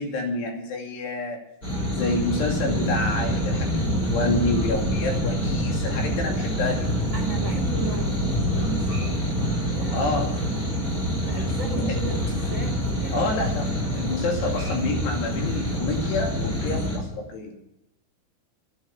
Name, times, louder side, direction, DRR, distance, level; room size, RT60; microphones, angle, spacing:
voice 1, 0.0-1.4 1.9-7.1 9.9-10.4 11.8-11.9 13.1-17.5, left 3 dB, 70° left, 1 dB, 4.4 m, -28 dB
sound 1, 1.6-17.0, equal, 20° left, 4.2 m, -26 dB
voice 2, 7.1-10.3 10.7-11.0 11.3-12.7 13.0-13.2, right 4 dB, 35° right, 1 dB, 2.3 m, -35 dB
11.0 x 10.0 x 9.2 m, 0.83 s
omnidirectional pair, 5.1 m